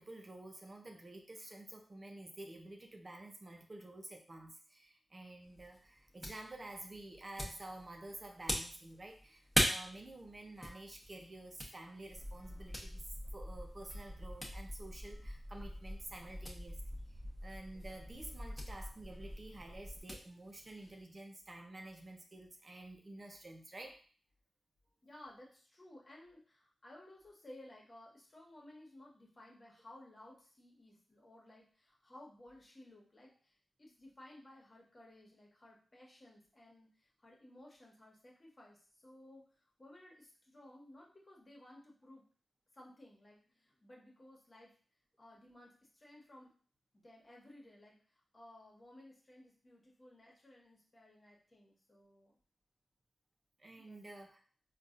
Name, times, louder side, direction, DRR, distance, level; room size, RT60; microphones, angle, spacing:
voice 1, 0.0-24.0 53.6-54.4, right 2 dB, 45° right, 2 dB, 0.6 m, -50 dB
sound 1, 5.4-21.0, equal, 15° left, 1.0 m, -43 dB
sound 2, 12.1-20.0, equal, 15° right, 1.0 m, -47 dB
voice 2, 25.0-42.2 42.7-44.7 45.2-46.5 46.9-52.4 53.7-54.0, left 1 dB, 45° left, -3 dB, 1.2 m, -58 dB
3.9 x 2.4 x 2.5 m, 0.42 s
cardioid pair, 45°, 0 cm